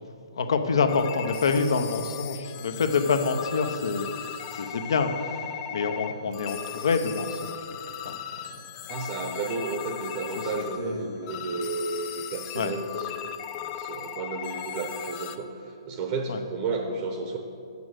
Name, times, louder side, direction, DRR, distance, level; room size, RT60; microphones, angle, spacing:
voice 1, 0.3-7.5 8.0-8.2 10.8-11.3 12.5-12.7 16.3-16.4, left 4 dB, 70° left, 8 dB, 0.7 m, -27 dB
sound 1, 0.9-15.4, left 9 dB, 30° left, 0.4 m, -37 dB
voice 2, 8.9-17.4, right 3 dB, 35° right, 3 dB, 0.7 m, -33 dB
6.9 x 6.3 x 6.3 m, 2.6 s
hypercardioid pair, 150°, 3 cm